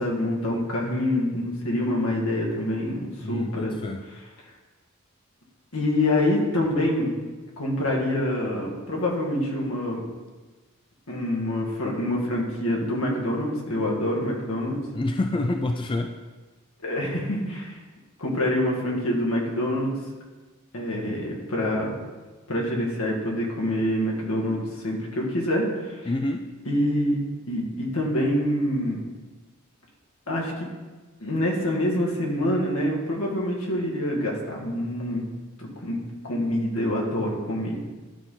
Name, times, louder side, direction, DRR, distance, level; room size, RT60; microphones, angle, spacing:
voice 1, 0.0-3.8 5.7-7.1 7.6-10.0 11.1-14.8 16.8-17.8 18.2-19.9 20.7-21.9 22.5-26.0 26.7-27.2 27.4-29.0 30.3-30.5 31.2-35.2 35.6-37.8, left 1 dB, 75° left, -2 dB, 1.9 m, -26 dB
voice 2, 3.2-4.0 14.9-16.1 26.0-26.5, left 2 dB, 25° left, 5 dB, 0.3 m, -27 dB
12.0 x 4.2 x 3.8 m, 1.3 s
head